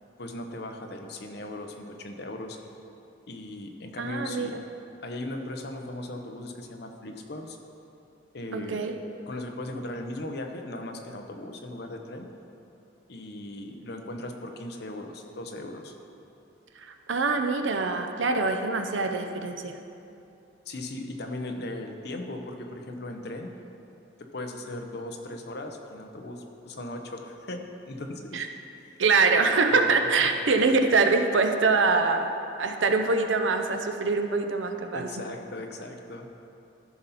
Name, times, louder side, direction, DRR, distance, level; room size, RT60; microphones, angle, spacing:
voice 1, 0.2-2.6 3.3-4.6 5.0-7.6 8.3-8.8 9.3-12.3 13.1-16.0 20.7-23.5 24.2-28.4 30.2-30.3 34.9-36.3, left 1 dB, 60° left, 4 dB, 0.8 m, -38 dB
voice 2, 4.0-4.5 8.5-8.9 16.8-19.8 28.3-28.5 29.0-32.3 32.6-35.1, right 4 dB, 85° right, 6 dB, 0.7 m, -24 dB
13.5 x 5.6 x 4.2 m, 2.7 s
head